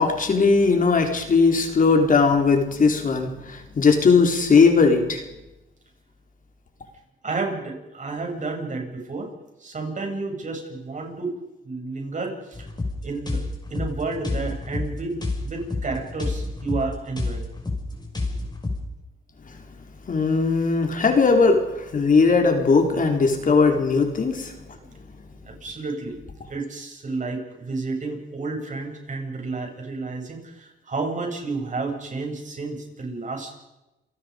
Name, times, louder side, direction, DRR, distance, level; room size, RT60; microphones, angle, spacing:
voice 1, 0.0-5.2 20.1-24.5, left 4 dB, 40° left, 3 dB, 4.2 m, -19 dB
voice 2, 7.2-9.3 9.6-11.3 11.6-12.7 13.0-13.4 13.7-17.5 24.7-25.0 25.4-26.2 26.5-33.6, right 3 dB, 40° right, 2 dB, 7.9 m, -31 dB
sound 1, 12.5-18.8, left 2 dB, 20° left, 6.2 m, -29 dB
28.5 x 18.5 x 5.3 m, 0.96 s
cardioid pair, 90°, 20 cm